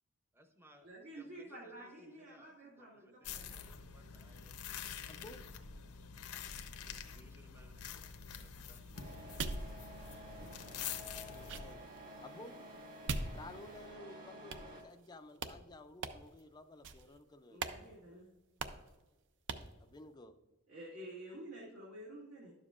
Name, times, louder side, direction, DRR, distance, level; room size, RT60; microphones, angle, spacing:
voice 1, 0.3-4.7 7.0-7.8 8.3-8.8 9.1-9.2, equal, 10° right, 5 dB, 0.7 m, -65 dB
voice 2, 0.8-3.6 17.5-18.3 20.7-22.5, right 1 dB, 75° right, -5 dB, 1.9 m, -50 dB
sound 1, 3.2-11.8, left 7 dB, 75° left, 0.7 m, -47 dB
voice 3, 5.1-5.4 11.1-11.8 12.2-12.5 13.3-17.6 19.8-20.3, left 2 dB, 20° left, 7 dB, 0.4 m, -53 dB
sound 2, 8.7-14.0 14.5-15.1 15.4-15.6 16.0-16.4 16.8-17.2 17.6-17.8 18.1-18.2 18.6-18.9 19.5-19.8, right 4 dB, 55° right, 0.5 m, -44 dB
Truck, 8.9-14.8, equal, 40° right, 1.9 m, -51 dB
11.5 x 7.2 x 2.4 m, 1.1 s
head